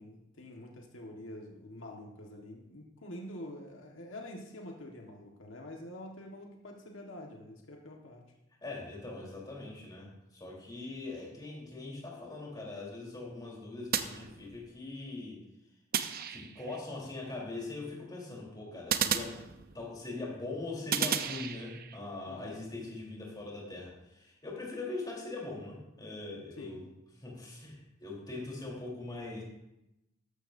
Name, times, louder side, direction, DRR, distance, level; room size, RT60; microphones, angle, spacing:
voice 1, 0.0-8.2 22.3-22.5 26.6-26.8, left 1 dB, 90° left, 1 dB, 1.6 m, -46 dB
voice 2, 8.6-15.4 16.3-19.4 19.7-26.8 27.2-29.4, left 2 dB, 20° left, -3 dB, 3.7 m, -41 dB
sound 1, 13.9-14.8 15.9-16.8 18.9-20.0 20.9-22.0, right 8 dB, 50° right, 0.7 m, -33 dB
14.0 x 12.0 x 2.7 m, 0.88 s
head